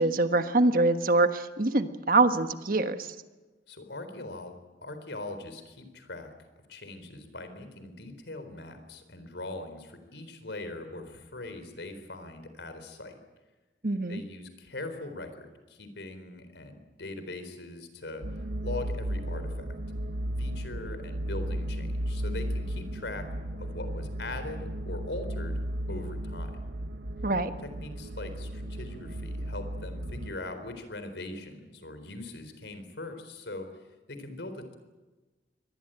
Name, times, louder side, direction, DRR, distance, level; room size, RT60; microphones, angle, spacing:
voice 1, 0.0-3.1 13.8-14.2 27.2-27.5, right 2 dB, 50° right, 9 dB, 1.4 m, -24 dB
voice 2, 3.7-4.6 4.8-6.3 6.7-13.2 14.1-19.7 20.4-23.3 23.6-25.6 25.9-26.6 27.8-33.7 34.1-34.8, left 2 dB, 80° left, 8 dB, 4.0 m, -41 dB
sound 1, 18.2-30.3, right 1 dB, 80° right, 1.1 m, -35 dB
24.5 x 19.5 x 9.0 m, 1.2 s
head